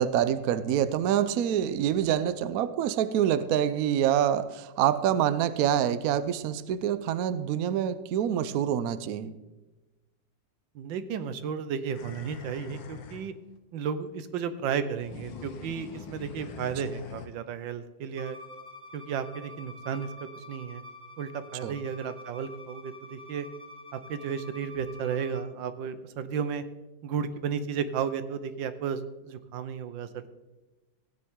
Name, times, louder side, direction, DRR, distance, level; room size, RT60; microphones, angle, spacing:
voice 1, 0.0-9.3 21.6-21.7, right 10 dB, 65° right, 0.9 m, -26 dB
voice 2, 10.7-13.3 13.7-18.4 18.9-20.1 20.4-20.8 21.2-23.5 23.9-26.6 27.0-30.3, right 7 dB, 85° right, 1.5 m, -33 dB
sound 1, 11.9-13.3 15.0-17.3, left 5 dB, 85° left, 1.8 m, -43 dB
Bowed string instrument, 18.2-25.4, left 2 dB, 20° right, 1.1 m, -47 dB
16.0 x 9.6 x 3.7 m
omnidirectional pair, 2.0 m